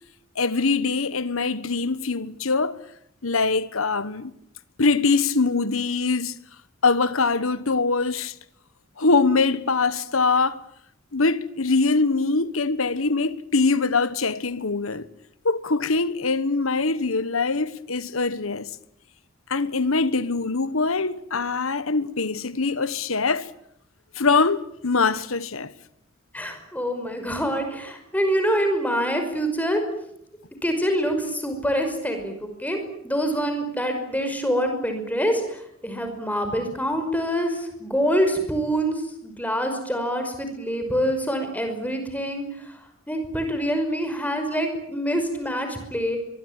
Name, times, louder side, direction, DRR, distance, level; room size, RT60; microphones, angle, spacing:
voice 1, 0.3-2.8 3.2-4.3 4.8-6.4 6.8-8.3 9.0-10.6 11.1-15.1 15.4-18.7 19.5-23.5 24.1-25.7, left 4 dB, 80° left, 1.4 m, -23 dB
voice 2, 26.3-29.8 30.6-32.8 33.0-42.8 43.1-46.2, equal, 10° left, 5.6 m, -25 dB
24.0 x 23.5 x 9.0 m
head